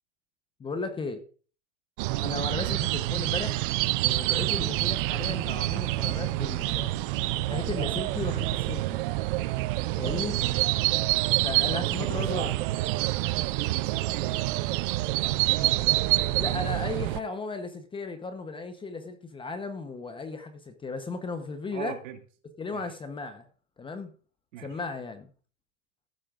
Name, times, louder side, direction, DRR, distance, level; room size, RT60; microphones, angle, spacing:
voice 1, 0.6-1.2 2.2-3.7 4.0-6.9 7.3-9.0 10.0-10.4 11.4-12.5 16.4-22.0 22.6-23.5 23.8-24.1 24.6-25.3, left 3 dB, 10° left, 0.9 m, -35 dB
sound 1, 2.0-17.2, right 18 dB, 40° right, 0.5 m, -27 dB
voice 2, 11.7-16.7 21.7-22.2 22.7-22.8 24.5-24.8, right 9 dB, 65° right, 2.4 m, -41 dB
15.5 x 8.5 x 2.5 m
hypercardioid pair, 130°, 40 cm